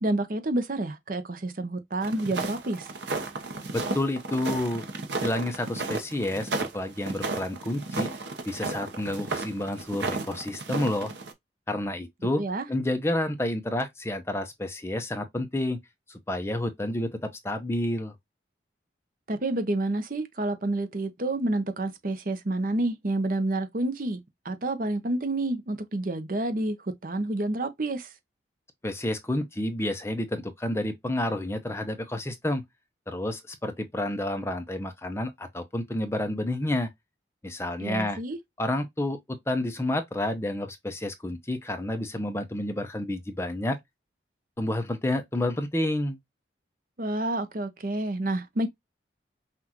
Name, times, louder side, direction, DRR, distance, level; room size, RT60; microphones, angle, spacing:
voice 1, 0.0-2.9 12.4-12.7 19.3-24.2 24.4-26.8 27.0-28.1 37.8-38.4 47.0-48.7, right 2 dB, 50° right, 0.7 m, -29 dB
sound 1, 2.0-11.3, right 3 dB, 75° right, 0.9 m, -33 dB
voice 2, 3.7-4.8 5.2-8.1 8.5-11.1 11.7-12.4 12.7-15.8 16.1-18.1 28.8-32.6 33.1-36.9 37.4-38.2 38.6-43.8 44.6-46.2, left 1 dB, 15° left, 0.6 m, -30 dB
5.8 x 2.5 x 2.9 m
head